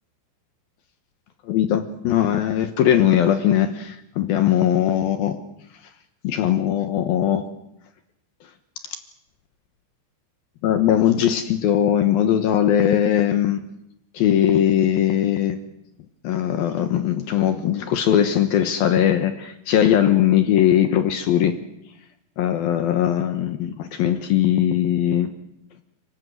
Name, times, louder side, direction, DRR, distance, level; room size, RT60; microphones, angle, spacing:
voice 1, 1.5-5.4 6.2-7.5 10.6-13.6 14.1-15.6 16.2-21.6 22.4-25.3, left 10 dB, 75° left, 8 dB, 2.2 m, -20 dB
30.0 x 18.5 x 7.9 m, 0.80 s
omnidirectional pair, 5.9 m